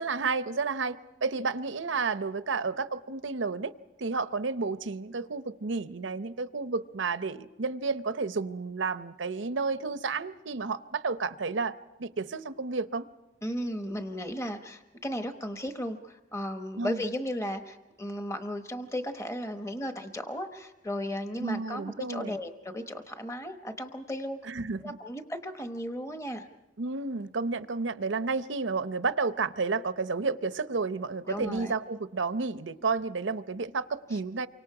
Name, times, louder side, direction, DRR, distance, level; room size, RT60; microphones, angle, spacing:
voice 1, 0.0-3.7 4.0-11.7 12.0-13.1 16.8-17.0 21.4-22.4 24.4-25.0 26.8-34.5, right 4 dB, 85° right, 0.7 m, -31 dB
voice 2, 13.4-24.4 24.8-26.5 31.3-31.8 34.1-34.2, equal, 15° left, 1.0 m, -35 dB
29.0 x 25.0 x 4.9 m
head